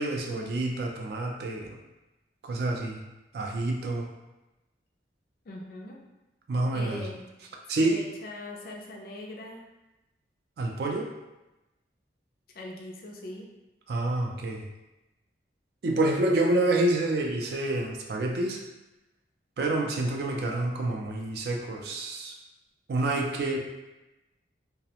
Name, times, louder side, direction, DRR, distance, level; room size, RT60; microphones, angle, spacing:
voice 1, 0.0-1.8 2.4-3.0 3.3-4.1 6.5-7.1 7.7-8.1 10.6-11.1 13.9-14.7 15.8-18.6 19.6-22.3 22.9-23.6, right 2 dB, 55° right, 1 dB, 0.3 m, -28 dB
voice 2, 5.5-6.0 6.7-7.3 7.8-9.6 12.5-13.4, left 1 dB, 50° left, 0 dB, 0.3 m, -41 dB
2.3 x 2.0 x 2.8 m, 1.0 s
head